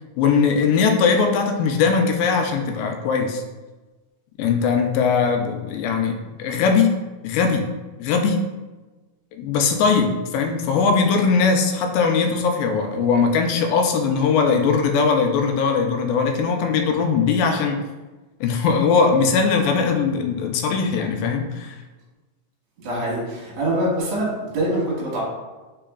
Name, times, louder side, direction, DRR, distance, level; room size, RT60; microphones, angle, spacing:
voice 1, 0.2-3.4 4.4-7.0 7.2-7.7 8.0-8.4 9.4-17.8 18.4-21.8, left 5 dB, 80° left, 4 dB, 2.1 m, -20 dB
voice 2, 22.8-25.2, right 1 dB, 55° right, -5 dB, 1.8 m, -24 dB
4.6 x 4.1 x 2.3 m, 1.2 s
omnidirectional pair, 4.1 m